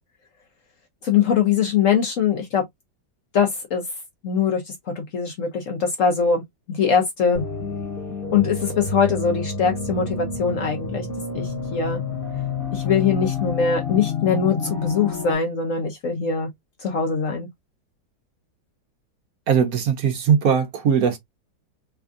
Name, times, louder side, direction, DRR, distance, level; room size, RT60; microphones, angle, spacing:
voice 1, 1.0-2.6 3.3-3.8 4.2-6.4 6.7-7.4 8.3-11.1 11.3-12.0 12.7-16.5 16.8-17.5, left 6 dB, 55° left, 1.0 m, -22 dB
sound 1, 7.3-15.3, left 5 dB, 35° left, 1.2 m, -29 dB
voice 2, 19.5-21.2, right 7 dB, 60° right, 1.2 m, -19 dB
3.6 x 3.5 x 2.4 m
omnidirectional pair, 1.9 m